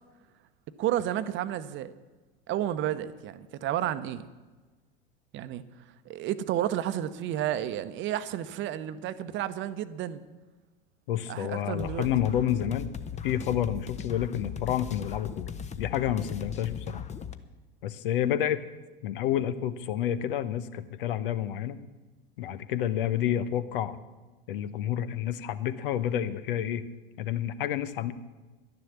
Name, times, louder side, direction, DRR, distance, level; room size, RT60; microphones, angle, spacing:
voice 1, 0.8-1.9 2.5-4.3 5.3-5.6 6.1-10.2 11.3-12.1, right 11 dB, 40° right, 12 dB, 0.9 m, -31 dB
voice 2, 11.1-12.9 13.2-15.5 15.8-17.0 17.8-18.6 19.0-21.8 22.4-24.0 24.5-26.8 27.2-28.1, left 10 dB, 65° left, 13 dB, 0.9 m, -29 dB
sound 1, 11.8-17.3, left 7 dB, 25° left, 0.9 m, -38 dB
11.5 x 10.5 x 7.3 m, 1.2 s
figure-of-eight pair, 80°, 29 cm